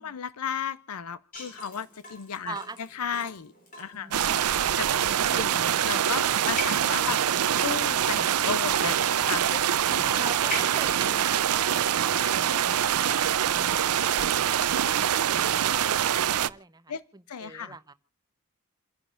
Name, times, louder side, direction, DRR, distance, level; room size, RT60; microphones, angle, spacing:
voice 1, 0.0-4.3 4.8-10.1 16.9-17.0 17.3-17.7, left 7 dB, 85° left, 16 dB, 0.6 m, -35 dB
Water tap faucet / Drip, 1.3-13.3, left 1 dB, 40° left, 3.6 m, -42 dB
voice 2, 2.5-2.8 3.9-4.8 10.1-13.0 15.3-17.9, right 3 dB, 15° right, 11 dB, 0.8 m, -43 dB
sound 1, 4.1-16.5, right 10 dB, 90° right, 0.5 m, -25 dB
sound 2, 6.4-6.8 7.0-8.5 8.8-12.1 12.4-13.9 14.2-15.6, right 2 dB, 55° right, 1.7 m, -47 dB
29.0 x 10.5 x 2.5 m, 0.37 s
head